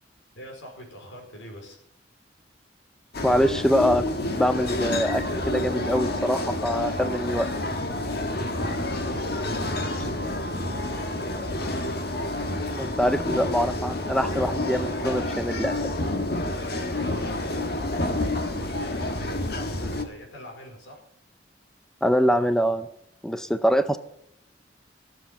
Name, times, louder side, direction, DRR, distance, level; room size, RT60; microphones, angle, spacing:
voice 1, 0.3-1.8 8.1-11.6 16.9-21.0, left 1 dB, 90° left, 2 dB, 4.6 m, -43 dB
sound 1, 3.1-20.0, left 1 dB, 55° left, 1.6 m, -29 dB
voice 2, 3.2-4.0 4.3-7.5 12.8-15.9 22.0-22.9 23.2-24.0, equal, 5° left, 11 dB, 0.6 m, -24 dB
15.0 x 7.6 x 7.0 m, 0.77 s
head